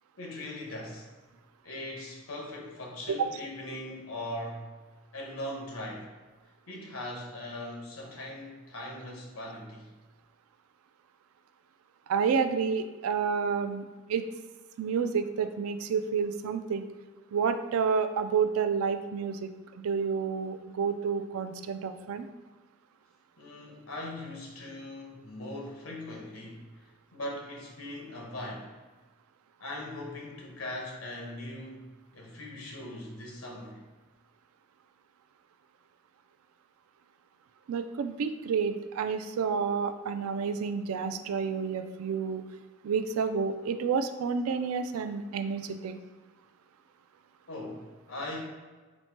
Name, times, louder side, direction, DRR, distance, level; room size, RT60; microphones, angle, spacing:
voice 1, 0.2-1.1 1.6-4.7 5.1-6.1 6.7-9.9 23.4-28.7 29.6-31.9 32.1-33.8 47.5-48.4, left 1 dB, 85° left, -1 dB, 1.0 m, -40 dB
voice 2, 12.1-13.8 14.1-14.2 14.8-16.9 17.3-22.3 37.7-42.4 42.8-45.9, right 6 dB, 90° right, 9 dB, 0.3 m, -30 dB
4.1 x 2.2 x 4.4 m, 1.3 s
head